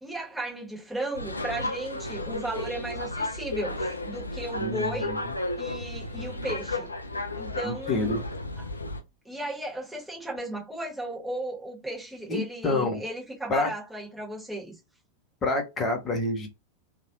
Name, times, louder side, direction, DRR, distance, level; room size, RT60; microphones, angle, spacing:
voice 1, 0.0-5.1 5.6-6.9 7.4-8.2 9.2-14.8, right 1 dB, ahead, 1.5 m, -35 dB
sound 1, 1.1-9.0, left 2 dB, 80° left, 0.4 m, -33 dB
voice 2, 4.6-5.3 7.6-8.2 12.3-13.0 13.5-13.7 15.4-16.5, left 2 dB, 25° left, 1.1 m, -28 dB
3.0 x 2.5 x 2.8 m
figure-of-eight pair, 90°, 0 cm